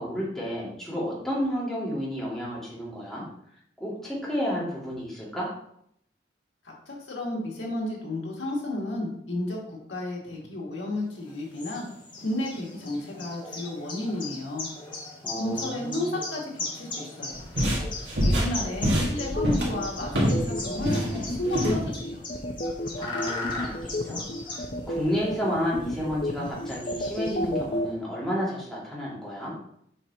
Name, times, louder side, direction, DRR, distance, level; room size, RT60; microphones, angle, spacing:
voice 1, 0.0-3.2 3.8-5.5 15.2-16.2 23.0-24.2 24.5-29.5, equal, 5° left, -7 dB, 2.1 m, -31 dB
voice 2, 6.6-11.9 12.2-14.7 15.4-17.5 18.0-22.2, left 1 dB, 90° left, -2 dB, 2.0 m, -32 dB
sound 1, 11.2-27.7, left 3 dB, 25° left, 1.5 m, -39 dB
sound 2, 17.3-20.5 20.8-21.8, equal, 75° right, 1.9 m, -25 dB
sound 3, 18.9-27.9, left 1 dB, 45° left, 0.7 m, -31 dB
7.6 x 5.8 x 2.8 m, 0.71 s
head